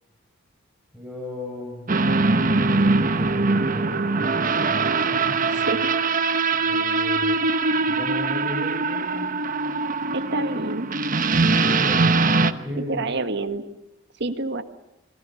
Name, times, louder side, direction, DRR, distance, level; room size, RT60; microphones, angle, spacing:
voice 1, 0.9-1.9 2.3-5.8 6.6-7.4 7.8-9.3 11.4-13.1, left 1 dB, 5° right, -2 dB, 4.9 m, -36 dB
sound 1, 1.9-12.5, right 3 dB, 40° right, 1.0 m, -22 dB
voice 2, 5.5-5.8 10.1-10.9 12.8-13.6 14.2-14.6, right 3 dB, 60° right, 10 dB, 1.6 m, -28 dB
27.0 x 22.5 x 7.0 m, 0.92 s
head